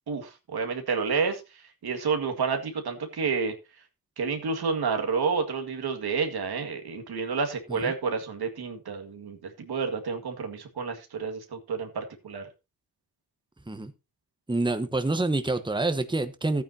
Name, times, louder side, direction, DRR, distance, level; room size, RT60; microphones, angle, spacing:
voice 1, 0.1-1.4 1.8-3.5 4.2-12.5, right 5 dB, 90° right, 2.1 m, -29 dB
voice 2, 14.5-16.6, right 2 dB, 10° right, 1.2 m, -27 dB
14.5 x 9.0 x 2.8 m
cardioid pair, 75°, 37 cm